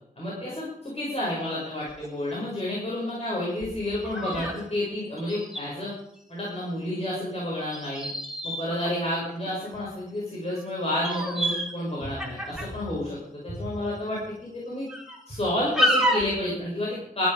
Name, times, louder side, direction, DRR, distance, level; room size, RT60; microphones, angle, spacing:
voice 1, 0.2-5.9 6.3-8.1 8.4-14.3 14.6-14.9 15.3-17.3, left 1 dB, 40° left, -5 dB, 6.8 m, -30 dB
sound 1, 1.2-1.3 1.9-2.1 2.6-2.7 3.6-4.6 4.9-5.0 5.2-5.6 7.7-9.8 10.5-10.6 10.9-11.7 12.0-12.8 13.5-13.7 14.2-14.3 14.9-15.4 15.7-16.3, equal, 5° right, 4.9 m, -29 dB
19.0 x 12.0 x 5.2 m, 0.77 s
cardioid pair, 65°, 15 cm